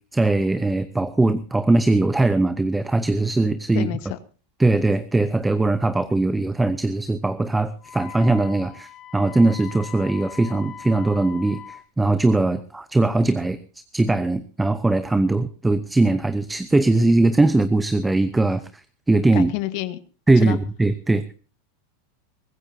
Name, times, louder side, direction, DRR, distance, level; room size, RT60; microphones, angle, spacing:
voice 1, 0.1-3.9 4.6-13.6 13.9-18.7 19.1-19.5 20.3-21.3, right 2 dB, 10° right, 13 dB, 0.8 m, -20 dB
voice 2, 3.7-4.2 19.3-20.0 20.4-20.6, left 16 dB, 60° left, 13 dB, 1.3 m, -28 dB
Wind instrument woodwind instrument, 7.8-11.9, left 9 dB, 30° left, 1.1 m, -40 dB
23.0 x 15.0 x 2.8 m, 0.37 s
hypercardioid pair, 100°, 0 cm